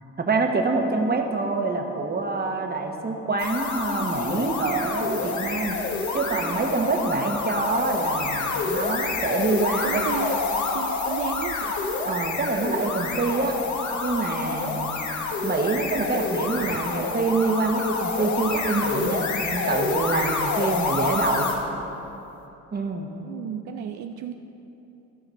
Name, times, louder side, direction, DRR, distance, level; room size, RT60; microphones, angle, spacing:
voice 1, 0.2-5.8 6.1-10.1 12.0-13.6 14.0-15.0 15.4-21.5 22.7-23.1, right 3 dB, 30° right, 3 dB, 1.2 m, -26 dB
sound 1, 3.4-21.6, left 4 dB, 70° left, 1.3 m, -28 dB
voice 2, 9.7-10.4 10.7-11.7 14.2-14.9 23.2-24.3, right 9 dB, 75° right, 5 dB, 0.5 m, -34 dB
13.5 x 5.7 x 5.6 m, 3.0 s
cardioid pair, 90°, 30 cm